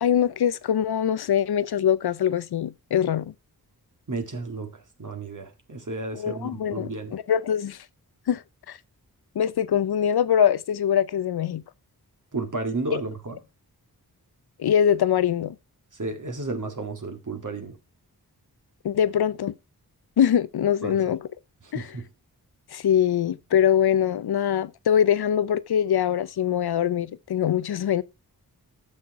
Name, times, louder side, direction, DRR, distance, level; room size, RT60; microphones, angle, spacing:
voice 1, 0.0-3.3 6.1-7.8 8.3-8.4 8.7-8.8 9.4-11.6 14.6-15.5 18.8-19.5 20.2-21.3 21.7-21.9 22.7-28.0, left 9 dB, 75° left, 0.6 m, -23 dB
voice 2, 4.1-7.1 12.3-13.4 15.9-17.8 20.8-21.1 21.6-22.0, right 3 dB, 50° right, 1.9 m, -33 dB
9.5 x 6.4 x 4.7 m
cardioid pair, 50°, 38 cm